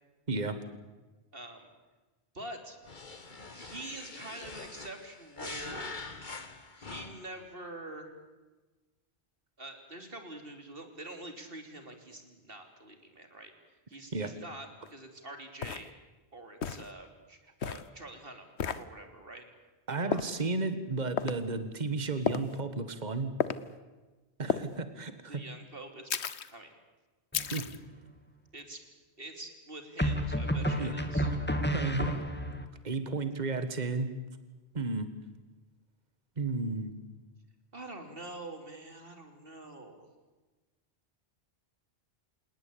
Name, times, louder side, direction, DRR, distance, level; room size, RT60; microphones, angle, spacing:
voice 1, 1.3-1.7 2.3-2.8 3.5-5.9 6.8-8.1 9.6-15.9 16.3-18.5 18.8-19.5 20.0-20.3 25.3-26.1 26.5-26.8 28.5-28.8 29.2-31.3 37.7-40.1, right 2 dB, 60° right, 6 dB, 3.6 m, -45 dB
sound 1, 2.8-7.4, left 3 dB, 45° left, 1.8 m, -44 dB
sound 2, 14.9-15.0 15.6-15.9 16.6-16.9 17.6-17.9 18.6-18.8 20.1-20.4 21.2-21.4 22.3-22.6 23.4-23.6 24.5-24.7 26.1-26.5 27.3-27.8, left 7 dB, 85° left, 1.3 m, -32 dB
voice 2, 19.9-23.3 24.4-25.4 27.5-27.7 30.8-30.9 31.7-32.2 32.8-34.1 34.7-35.1 36.4-36.9, right 3 dB, 40° right, 10 dB, 1.8 m, -33 dB
sound 3, 27.3-27.9 30.0-32.7, equal, 10° left, 2.0 m, -31 dB
28.0 x 19.0 x 8.6 m, 1.2 s
omnidirectional pair, 1.1 m